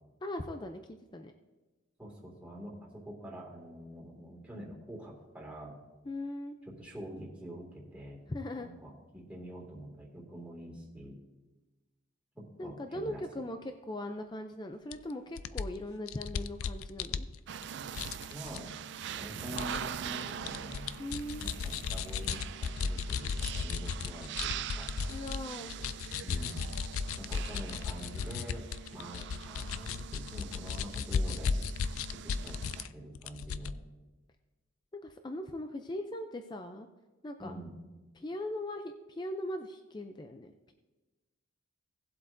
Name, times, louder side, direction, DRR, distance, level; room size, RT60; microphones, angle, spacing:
voice 1, 0.2-1.3 6.1-6.6 8.3-8.7 12.6-17.3 21.0-21.5 25.1-25.8 34.9-36.9 37.2-37.5 38.2-40.7, left 1 dB, 20° left, 6 dB, 0.4 m, -40 dB
voice 2, 2.0-5.8 6.6-8.2 8.5-11.2 12.3-13.4 18.3-18.7 19.2-20.9 21.4-24.9 26.2-26.7 27.2-28.6 28.9-31.5 32.2-33.7 37.4-37.7, equal, 5° right, -4 dB, 2.2 m, -46 dB
sound 1, 14.9-15.0 15.4-17.6 17.9-18.6 19.6-19.8 20.2-25.4 25.7-32.9 33.1-33.7, left 6 dB, 85° left, 0.4 m, -35 dB
sound 2, 17.5-32.8, right 8 dB, 55° right, 0.3 m, -43 dB
18.0 x 7.7 x 2.6 m, 1.2 s
head